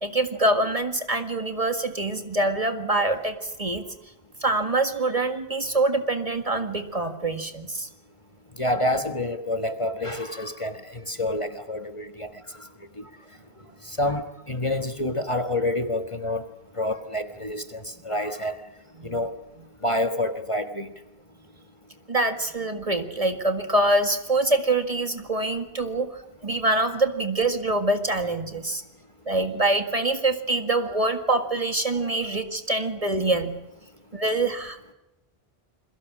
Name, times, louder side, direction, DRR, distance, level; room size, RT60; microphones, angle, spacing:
voice 1, 0.0-3.9 4.4-7.9 19.0-19.2 22.1-26.1 26.4-28.8 29.3-33.6 34.1-34.9, right 2 dB, 35° right, 7 dB, 1.9 m, -25 dB
voice 2, 8.6-12.3 12.6-12.7 13.0-13.1 13.8-16.4 16.8-18.6 19.0-19.3 19.8-20.9, left 1 dB, 30° left, 7 dB, 1.4 m, -28 dB
28.5 x 22.0 x 6.2 m, 0.93 s
omnidirectional pair, 1.0 m